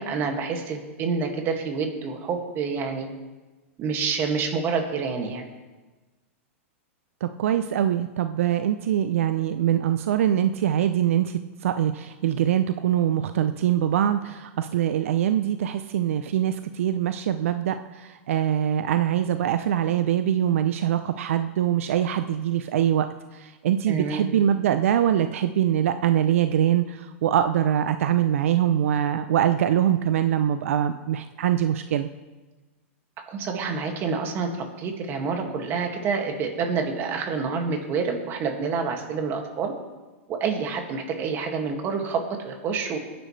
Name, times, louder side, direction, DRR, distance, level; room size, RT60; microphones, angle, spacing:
voice 1, 0.0-3.1 3.8-5.5 23.9-24.3 33.3-39.7 40.3-43.0, right 5 dB, 30° right, 3 dB, 2.1 m, -28 dB
voice 2, 7.2-23.1 23.3-32.1, right 10 dB, 75° right, 10 dB, 0.6 m, -23 dB
22.5 x 10.5 x 3.3 m, 1.2 s
supercardioid pair, 145°, 7 cm